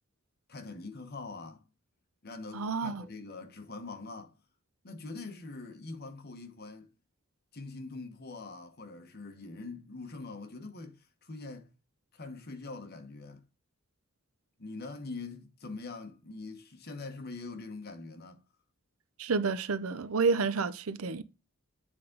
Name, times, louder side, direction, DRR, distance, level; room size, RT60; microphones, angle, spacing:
voice 1, 0.5-1.6 2.2-4.3 4.8-6.9 7.5-11.7 12.1-13.4 14.6-18.4, left 3 dB, 50° left, 1.1 m, -43 dB
voice 2, 2.5-3.1 19.2-21.2, right 4 dB, 85° right, 0.6 m, -29 dB
7.8 x 3.6 x 3.8 m
head